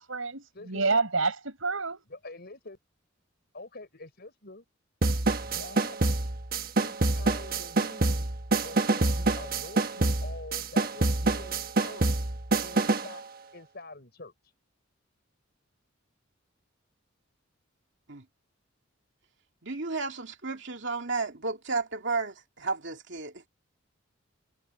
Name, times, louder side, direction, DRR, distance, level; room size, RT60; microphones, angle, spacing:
voice 1, 0.0-2.0, right 3 dB, 85° right, 4.9 m, -28 dB
voice 2, 0.5-1.0 2.1-2.8 3.5-4.6 5.4-6.0 6.8-8.3 8.6-12.1 12.6-13.2 13.5-14.3, left 2 dB, 50° left, 5.9 m, -46 dB
sound 1, 5.0-13.1, right 2 dB, 45° right, 1.3 m, -27 dB
voice 3, 19.6-23.5, right 3 dB, 60° right, 2.7 m, -33 dB
head